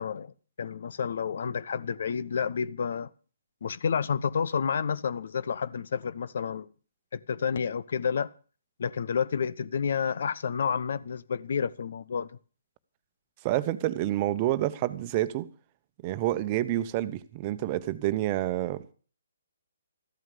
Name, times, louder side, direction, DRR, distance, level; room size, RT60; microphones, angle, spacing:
voice 1, 0.0-3.1 3.6-6.7 7.1-8.3 8.8-12.4, left 6 dB, 55° left, 1.0 m, -30 dB
voice 2, 13.4-15.5 16.0-18.9, right 14 dB, 30° right, 1.1 m, -28 dB
14.5 x 12.5 x 6.8 m
figure-of-eight pair, 135°, 0 cm